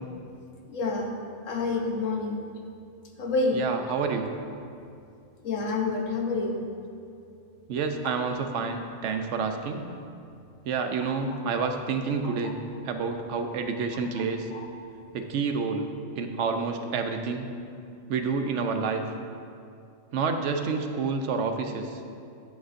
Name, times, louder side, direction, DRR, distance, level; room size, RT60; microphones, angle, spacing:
voice 1, 0.7-1.1 1.4-2.4 3.2-3.6 5.4-6.6 12.2-12.5 14.5-14.7, left 3 dB, 85° left, 1 dB, 1.2 m, -28 dB
voice 2, 3.5-4.3 7.7-10.0 10.6-12.5 12.8-14.5 15.1-17.5 18.1-19.0 20.1-21.9, right 5 dB, 75° right, 5 dB, 0.9 m, -29 dB
10.5 x 7.0 x 2.5 m, 2.5 s
omnidirectional pair, 1.3 m